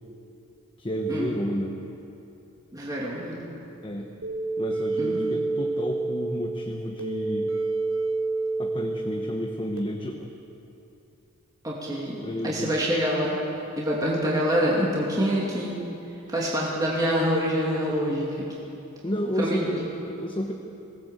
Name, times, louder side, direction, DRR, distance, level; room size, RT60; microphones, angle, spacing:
voice 1, 0.8-1.8 3.8-4.1 4.6-7.5 8.6-10.3 12.1-12.7 19.0-20.5, equal, 25° left, 2 dB, 1.2 m, -31 dB
voice 2, 2.7-3.4 5.0-5.3 11.6-12.2 12.4-13.4 13.8-15.7 16.3-18.5 19.4-19.7, equal, 15° right, -5 dB, 2.7 m, -26 dB
sound 1, 4.2-9.8, right 3 dB, 65° right, 3.7 m, -28 dB
21.0 x 17.5 x 8.2 m, 2.8 s
head